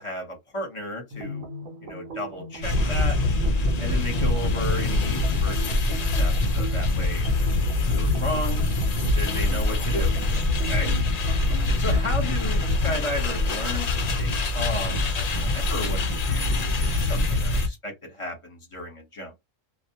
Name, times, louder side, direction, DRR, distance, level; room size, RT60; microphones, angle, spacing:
voice 1, 0.0-1.5 1.8-3.2 3.8-7.3 7.5-8.6 9.1-10.2 10.7-10.9 11.8-19.3, left 1 dB, 25° left, 0.9 m, -34 dB
sound 1, 1.1-13.9, right 1 dB, 70° right, 1.0 m, -40 dB
sound 2, 2.6-17.7, left 2 dB, 55° left, 0.4 m, -24 dB
2.3 x 2.2 x 2.8 m
omnidirectional pair, 1.4 m